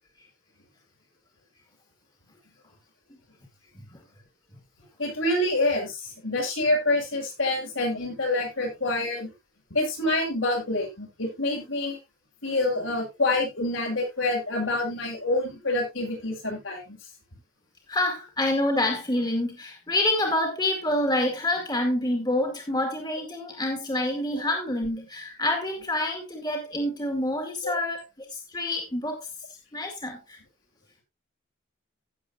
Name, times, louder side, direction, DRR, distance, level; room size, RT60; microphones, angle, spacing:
voice 1, 5.0-9.3 9.7-12.0 12.4-17.0 27.6-27.7, left 2 dB, 75° left, 6.2 m, -27 dB
voice 2, 17.9-29.3 29.7-30.4, left 1 dB, 20° left, 2.2 m, -27 dB
16.0 x 7.4 x 2.7 m
head